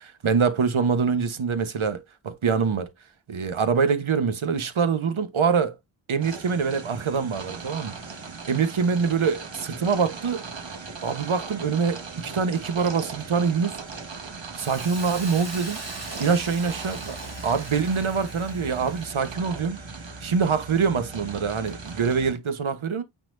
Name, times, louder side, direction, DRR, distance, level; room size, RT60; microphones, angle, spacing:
voice 1, 0.0-2.9 3.3-5.8 6.1-7.9 8.5-10.4 11.0-13.8 14.5-15.8 16.2-17.2 17.4-19.8 20.2-23.0, right 5 dB, 85° right, 1.3 m, -24 dB
sound 1, 6.2-22.3, right 4 dB, 70° right, 1.7 m, -38 dB
Hiss, 14.6-19.3, right 2 dB, 35° right, 2.6 m, -40 dB
8.9 x 4.2 x 2.7 m
cardioid pair, 40°, 47 cm